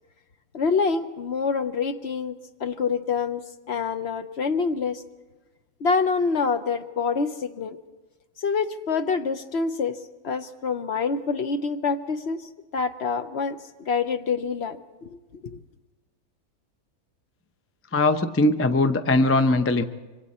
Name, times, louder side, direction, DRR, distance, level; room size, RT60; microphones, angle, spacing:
voice 1, 0.5-5.0 5.8-7.8 8.4-15.6, left 5 dB, 55° left, 9 dB, 1.0 m, -27 dB
voice 2, 17.9-19.8, left 2 dB, 20° left, 8 dB, 0.4 m, -20 dB
26.0 x 24.5 x 4.3 m, 1.2 s
omnidirectional pair, 1.5 m